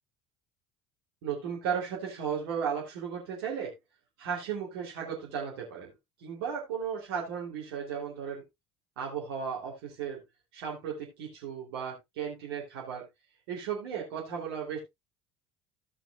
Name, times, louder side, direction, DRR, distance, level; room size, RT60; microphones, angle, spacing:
voice 1, 1.2-3.7 4.2-5.9 6.2-8.4 9.0-10.2 10.5-13.0 13.5-14.8, right 7 dB, 75° right, -2 dB, 3.3 m, -35 dB
16.0 x 6.0 x 2.4 m, 0.20 s
hypercardioid pair, 65°, 13 cm